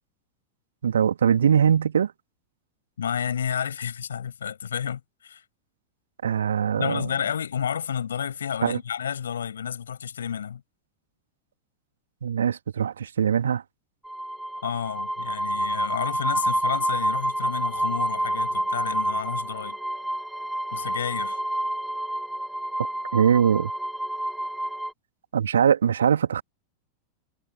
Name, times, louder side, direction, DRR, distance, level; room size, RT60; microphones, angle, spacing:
voice 1, 0.8-2.1 6.2-7.1 8.6-8.8 12.2-13.6 23.1-23.7 25.3-26.4, right 8 dB, 65° right, 2.4 m, -22 dB
voice 2, 3.0-5.4 6.8-10.6 14.6-19.8 20.7-21.4, left 8 dB, 65° left, 7.0 m, -31 dB
sound 1, 14.0-24.9, right 1 dB, 5° right, 2.5 m, -28 dB
figure-of-eight pair, 90°, 0 cm